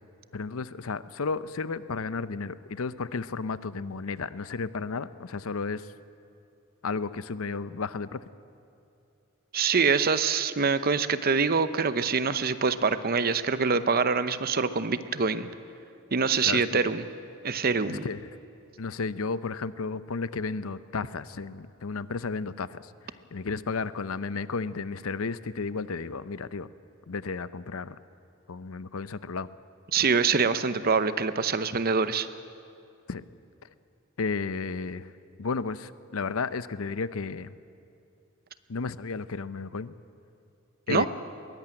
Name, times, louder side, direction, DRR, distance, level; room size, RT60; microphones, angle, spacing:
voice 1, 0.3-5.9 6.8-8.2 16.5-16.8 17.9-18.2 18.8-22.9 23.3-26.7 27.1-27.9 28.5-29.5 33.1-33.2 34.2-35.1 35.4-37.5 38.7-39.9 40.9-41.1, left 4 dB, 75° left, 15 dB, 0.6 m, -33 dB
voice 2, 9.5-15.5 16.1-17.0 17.4-18.1 29.9-32.3 40.9-41.1, right 5 dB, 45° right, 12 dB, 0.8 m, -25 dB
21.5 x 17.0 x 8.9 m, 2.6 s
head